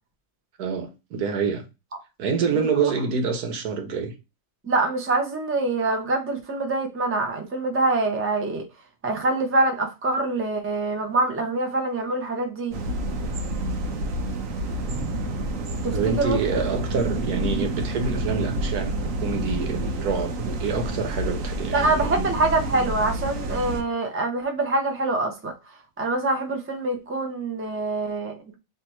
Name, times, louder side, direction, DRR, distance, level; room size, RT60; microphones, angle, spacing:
voice 1, 0.6-1.6 2.2-4.1 15.9-22.3, right 5 dB, 85° right, 1.4 m, -27 dB
voice 2, 2.5-2.9 4.6-8.6 9.0-12.8 15.8-16.4 21.7-25.5 26.0-28.6, right 2 dB, 10° right, 0.6 m, -25 dB
sound 1, 12.7-23.8, right 1 dB, 65° right, 1.1 m, -28 dB
3.5 x 2.8 x 4.3 m
omnidirectional pair, 1.6 m